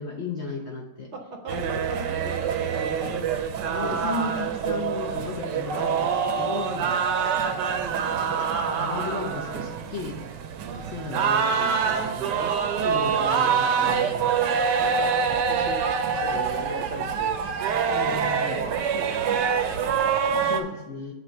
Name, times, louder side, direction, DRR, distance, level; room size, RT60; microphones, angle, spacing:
voice 1, 0.0-1.1 1.5-1.8 2.1-2.3 3.7-7.0 8.6-10.2 10.8-12.0 12.8-14.3 17.9-18.6 20.4-21.1, left 4 dB, 60° left, -1 dB, 0.7 m, -35 dB
voice 2, 1.1-2.0 2.4-4.0 4.6-5.5 6.6-7.0 7.8-9.0 10.6-10.9 11.7-15.9 16.2-17.5 18.0-18.2 18.6-20.5, right 3 dB, 55° right, 3 dB, 0.8 m, -39 dB
sound 1, 1.5-20.6, right 6 dB, 75° right, 1.2 m, -25 dB
8.1 x 2.9 x 6.2 m, 1.0 s
omnidirectional pair, 2.0 m